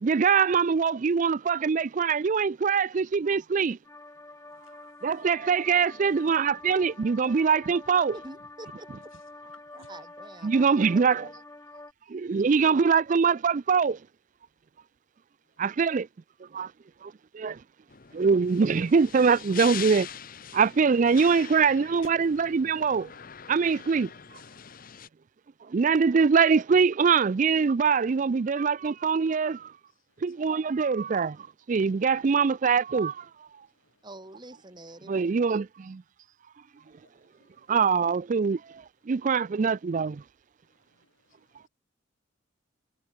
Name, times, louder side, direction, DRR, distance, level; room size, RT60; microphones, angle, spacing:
voice 1, 0.0-3.8 5.0-8.1 10.4-11.3 12.1-14.0 15.6-16.1 16.5-16.7 17.0-17.6 18.1-20.1 20.5-23.1 23.5-24.1 25.7-29.7 30.2-33.3 35.1-36.0 37.7-40.2, right 5 dB, 40° right, 0.4 m, -23 dB
sound 1, 3.8-11.9, left 2 dB, 15° left, 3.6 m, -47 dB
voice 2, 8.1-8.9 9.7-11.0 34.0-35.1, right 2 dB, 25° right, 2.6 m, -46 dB
sound 2, 17.9-25.1, left 9 dB, 45° left, 0.9 m, -42 dB
voice 3, 36.7-37.7 40.9-41.4, left 2 dB, 90° left, 5.5 m, -64 dB
head